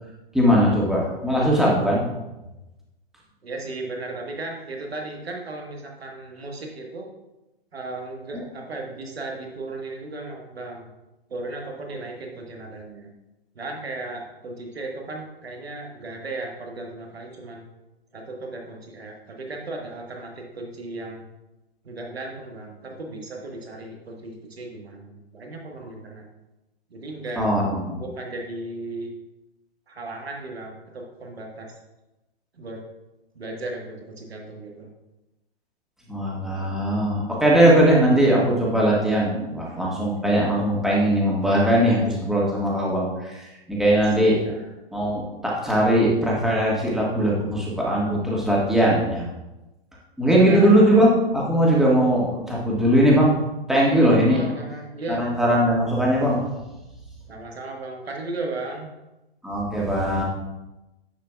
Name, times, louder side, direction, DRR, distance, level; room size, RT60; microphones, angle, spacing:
voice 1, 0.3-2.1 27.4-28.0 36.1-44.4 44.9-49.3 50.2-53.4 53.7-54.4 55.1-56.4 59.4-60.2, right 1 dB, ahead, -5 dB, 1.7 m, -20 dB
voice 2, 3.4-7.1 7.7-10.9 11.3-13.1 13.5-17.7 18.1-21.3 21.8-26.3 26.9-27.5 27.9-29.1 29.9-31.8 32.6-32.8 33.3-34.9 44.2-44.7 50.4-50.9 54.3-55.2 57.3-58.9, right 2 dB, 80° right, 1 dB, 1.6 m, -35 dB
9.9 x 6.6 x 2.4 m, 1.0 s
figure-of-eight pair, 120°, 30 cm